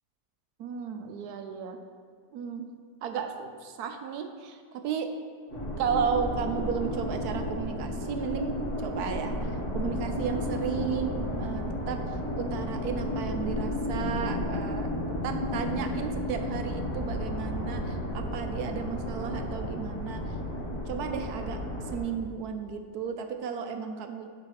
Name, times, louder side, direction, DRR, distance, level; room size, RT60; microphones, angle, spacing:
voice 1, 0.6-1.8 2.3-2.7 3.0-5.1 5.8-9.4 9.7-14.9 15.2-20.2 20.7-21.6 21.9-24.3, right 6 dB, 75° right, 6 dB, 1.0 m, -34 dB
sound 1, 5.5-22.0, left 1 dB, 45° left, 2.3 m, -32 dB
7.5 x 5.1 x 4.7 m, 2.2 s
omnidirectional pair, 1.8 m